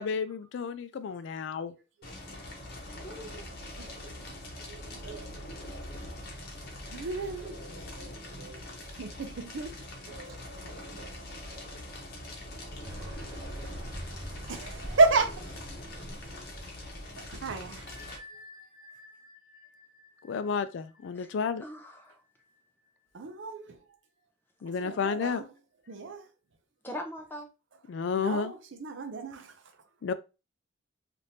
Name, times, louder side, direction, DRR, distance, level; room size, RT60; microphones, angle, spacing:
voice 1, 0.0-1.7 20.3-21.6 24.6-25.4 27.9-28.5 30.0-30.1, left 6 dB, 65° left, 0.3 m, -31 dB
Fire, 2.0-18.2, left 1 dB, 50° left, 1.0 m, -43 dB
voice 2, 2.9-3.5 21.1-21.3 21.6-22.2 26.8-27.5, equal, 10° left, 0.6 m, -41 dB
voice 3, 3.8-4.3 4.6-5.4 6.9-8.6 9.0-9.7 10.1-11.1 12.8-13.1 13.5-13.7 14.5-15.4 17.2-17.9 23.1-23.8 24.8-25.5 25.9-26.3 28.2-29.5, right 3 dB, 70° right, 0.5 m, -32 dB
sound 1, 12.8-17.7, equal, 10° right, 1.7 m, -44 dB
Bell, 17.9-23.3, left 2 dB, 40° right, 0.9 m, -54 dB
3.5 x 2.5 x 2.7 m
head